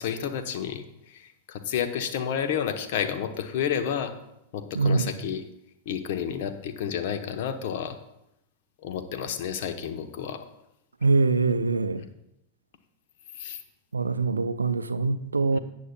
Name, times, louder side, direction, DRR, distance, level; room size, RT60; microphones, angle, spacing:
voice 1, 0.0-4.1 4.5-5.4 5.9-8.0 8.8-10.4 12.0-12.1 13.4-13.6 15.5-15.6, left 8 dB, 50° left, 0.9 m, -30 dB
voice 2, 4.7-5.1 11.0-12.0 13.9-15.6, right 3 dB, 75° right, 0.5 m, -24 dB
17.5 x 8.4 x 2.3 m
figure-of-eight pair, 90°, 0 cm